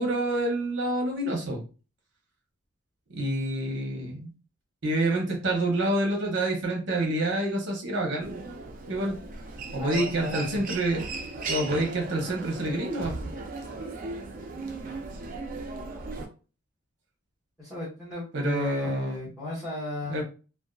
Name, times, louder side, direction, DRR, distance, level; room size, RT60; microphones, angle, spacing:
voice 1, 0.0-1.6 3.1-4.3 4.8-8.5 8.9-9.2 9.7-11.1 11.5-13.1 18.3-19.3 20.1-20.2, right 1 dB, 55° right, 0 dB, 0.8 m, -27 dB
Human voice, 8.2-16.3, right 3 dB, 40° right, 0.4 m, -37 dB
voice 2, 9.8-10.6 17.6-20.2, left 2 dB, ahead, -10 dB, 1.0 m, -35 dB
2.6 x 2.2 x 2.3 m, 0.35 s
head